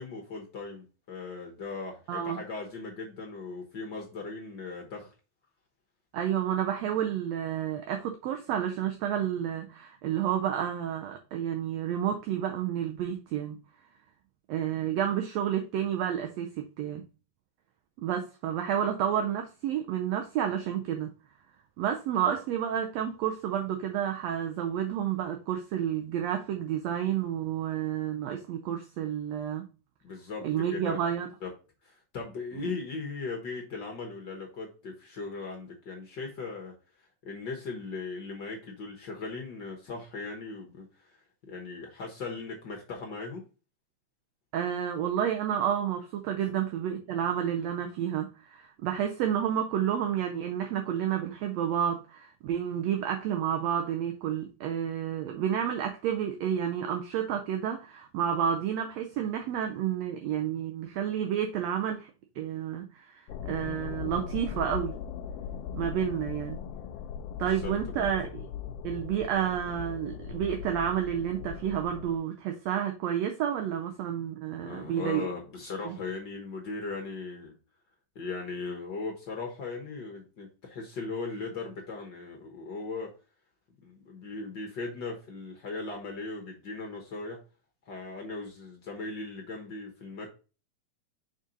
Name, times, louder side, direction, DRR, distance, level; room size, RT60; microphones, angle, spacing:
voice 1, 0.0-5.1 30.0-31.0 31.4-31.5 31.8-36.7 37.2-41.2 41.5-43.4 46.4-46.5 67.4-68.0 74.6-77.5 78.1-83.1 83.8-87.4 87.9-90.3, left 3 dB, 55° left, 1.3 m, -38 dB
voice 2, 2.1-2.4 6.1-13.6 14.5-17.0 18.0-21.1 21.8-29.7 30.4-31.3 32.7-32.8 44.5-65.0 65.7-66.6 67.4-68.5 68.8-75.3 75.9-76.0, right 9 dB, 75° right, 1.7 m, -30 dB
sound 1, 63.3-72.2, left 8 dB, 85° left, 1.4 m, -39 dB
6.4 x 3.8 x 3.9 m
omnidirectional pair, 3.3 m